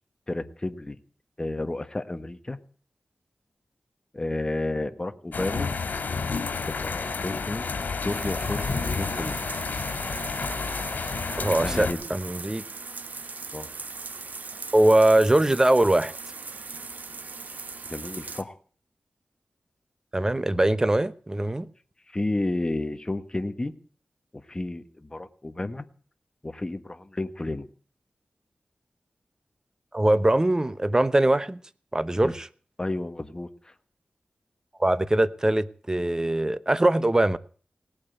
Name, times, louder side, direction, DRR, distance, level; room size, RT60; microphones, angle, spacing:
voice 1, 0.3-1.0 1.4-2.6 4.1-5.7 6.7-7.7 8.0-9.4 11.6-12.0 13.5-13.7 17.8-18.6 22.1-23.7 24.3-25.9 26.4-27.7 32.2-32.3 32.8-33.7, left 2 dB, 25° left, 9 dB, 1.3 m, -31 dB
sound 1, 5.3-11.9, left 4 dB, 85° left, 2.3 m, -30 dB
sound 2, 8.1-18.4, right 4 dB, 65° right, 1.2 m, -39 dB
voice 2, 11.4-12.6 14.7-16.1 20.1-21.7 29.9-31.6 31.9-32.5 34.8-37.4, right 1 dB, 20° right, 14 dB, 0.9 m, -22 dB
18.0 x 8.7 x 8.0 m, 0.43 s
wide cardioid pair, 85°, 3 cm